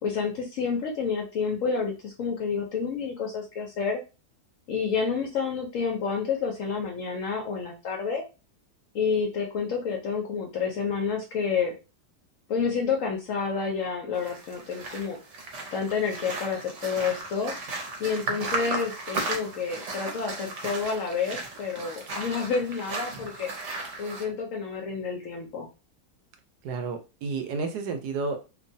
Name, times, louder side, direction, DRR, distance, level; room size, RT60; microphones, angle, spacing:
voice 1, 0.0-4.0 4.7-8.2 8.9-11.7 12.5-15.2 15.7-17.5 18.0-23.5 24.0-25.7, left 5 dB, 65° left, 2 dB, 0.8 m, -29 dB
sound 1, 14.1-24.2, right 3 dB, 55° right, 0.9 m, -35 dB
voice 2, 26.6-28.4, right 4 dB, 75° right, 6 dB, 1.1 m, -31 dB
3.0 x 2.2 x 2.6 m, 0.30 s
omnidirectional pair, 1.8 m